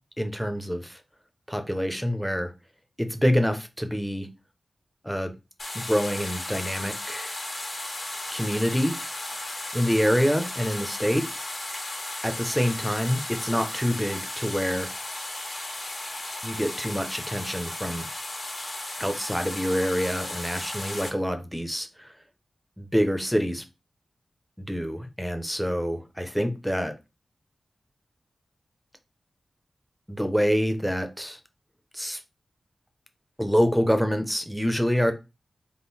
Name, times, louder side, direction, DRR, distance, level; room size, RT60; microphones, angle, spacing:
voice 1, 0.2-1.0 1.5-2.5 3.0-4.3 5.0-5.3 5.7-7.4 8.3-9.0 9.7-11.3 12.2-14.9 16.4-18.1 19.0-22.1 22.8-23.6 24.6-26.9 30.1-31.4 31.9-32.2 33.4-35.1, equal, ahead, 7 dB, 0.7 m, -26 dB
sound 1, 5.6-21.1, left 1 dB, 50° left, 1.5 m, -35 dB
3.8 x 2.5 x 4.1 m, 0.26 s
wide cardioid pair, 75°, 0 cm